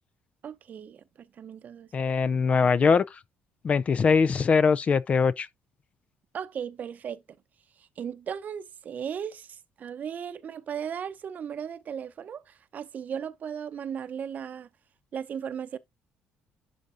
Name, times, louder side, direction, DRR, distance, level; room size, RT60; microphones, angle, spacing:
voice 1, 0.4-1.9 6.3-7.2 8.0-14.7 15.1-15.8, right 8 dB, 45° right, 0.7 m, -36 dB
voice 2, 1.9-3.2 3.6-5.5, left 5 dB, 35° left, 0.4 m, -22 dB
11.5 x 3.9 x 2.6 m
cardioid pair, 110°, 4 cm